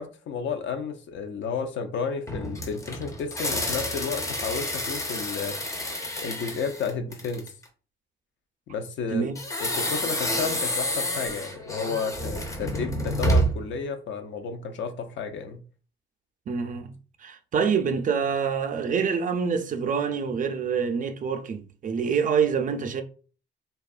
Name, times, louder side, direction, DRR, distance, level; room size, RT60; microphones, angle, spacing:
voice 1, 0.0-5.6 6.2-7.5 8.7-9.3 9.6-15.6, left 5 dB, 70° left, 0.5 m, -32 dB
sound 1, 2.3-7.6 9.3-13.7, equal, 15° left, 0.5 m, -29 dB
voice 2, 16.5-16.9 17.2-23.0, right 6 dB, 40° right, 0.4 m, -26 dB
2.6 x 2.3 x 2.3 m
cardioid pair, 90°, 20 cm